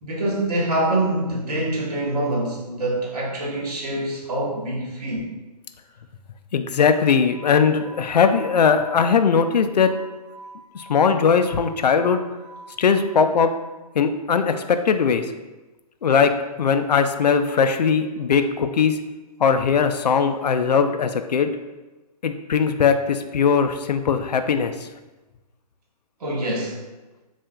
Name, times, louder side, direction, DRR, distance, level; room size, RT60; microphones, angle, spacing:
voice 1, 0.0-5.3 26.2-26.8, right 1 dB, 65° right, -3 dB, 1.4 m, -25 dB
voice 2, 6.5-9.9 10.7-12.2 12.8-13.5 13.9-15.3 16.0-16.3 16.6-19.0 19.4-21.5 22.2-24.9, left 6 dB, 80° left, 8 dB, 0.4 m, -19 dB
sound 1, 7.1-13.0, right 2 dB, 15° right, 0.4 m, -45 dB
5.6 x 2.4 x 2.3 m, 1.1 s
figure-of-eight pair, 125°, 21 cm